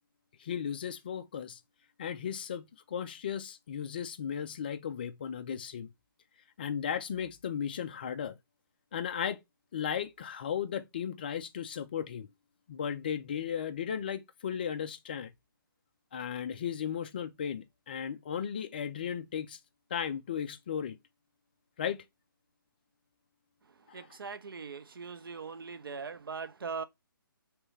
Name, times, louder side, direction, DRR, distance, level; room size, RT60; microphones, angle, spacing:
voice 1, 0.4-1.6 2.0-5.9 6.6-8.4 8.9-9.4 9.7-12.3 12.7-15.3 16.1-19.6 19.9-21.0 21.8-22.0 23.9-24.1, left 8 dB, 25° left, 0.3 m, -35 dB
voice 2, 23.9-26.8, right 5 dB, 75° right, 0.6 m, -40 dB
3.2 x 3.1 x 4.5 m
hypercardioid pair, 160°, 12 cm